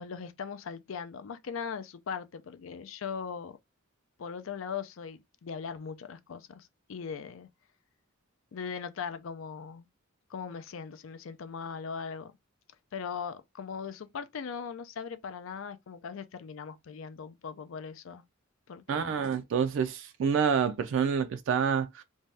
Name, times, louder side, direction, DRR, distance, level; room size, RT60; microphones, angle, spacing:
voice 1, 0.0-3.6 4.2-7.5 8.5-9.9 10.3-12.3 12.9-18.2 18.7-19.3, left 6 dB, 70° left, 0.4 m, -39 dB
voice 2, 18.9-22.0, right 6 dB, 65° right, 0.3 m, -28 dB
2.7 x 2.2 x 3.2 m
head